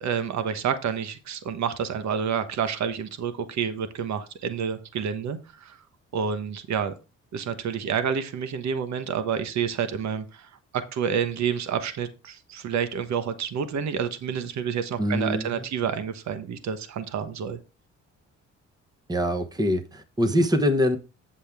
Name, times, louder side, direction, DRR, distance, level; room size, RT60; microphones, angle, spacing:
voice 1, 0.0-5.8 6.1-6.9 7.3-17.6, right 7 dB, 65° right, 1.1 m, -29 dB
voice 2, 15.0-15.7 19.1-21.0, equal, 15° right, 1.0 m, -24 dB
8.5 x 7.3 x 3.5 m
cardioid pair, 90°, 30 cm